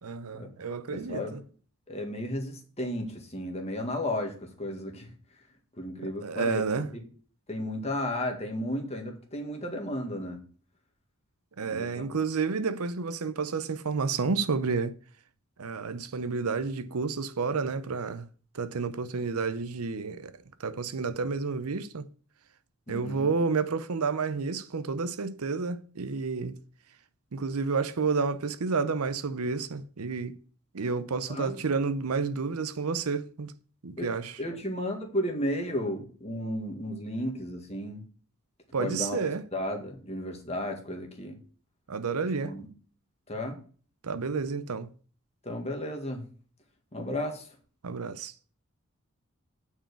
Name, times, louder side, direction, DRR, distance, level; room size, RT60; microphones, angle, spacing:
voice 1, 0.0-1.4 6.2-6.9 11.6-14.9 15.6-18.3 18.5-20.3 20.6-22.1 22.9-26.5 27.3-30.3 30.7-33.5 33.8-34.4 38.7-39.4 41.9-42.6 44.0-44.9 47.8-48.3, right 4 dB, 80° right, 0.7 m, -30 dB
voice 2, 0.9-1.4 1.9-5.1 5.8-7.0 7.5-10.4 11.7-12.1 22.9-23.3 31.3-31.6 34.0-34.1 34.4-38.0 38.8-39.2 39.5-41.4 42.4-42.7 43.3-43.6 45.4-46.2 46.9-47.5, left 1 dB, 30° left, 1.8 m, -34 dB
9.0 x 4.8 x 6.9 m
head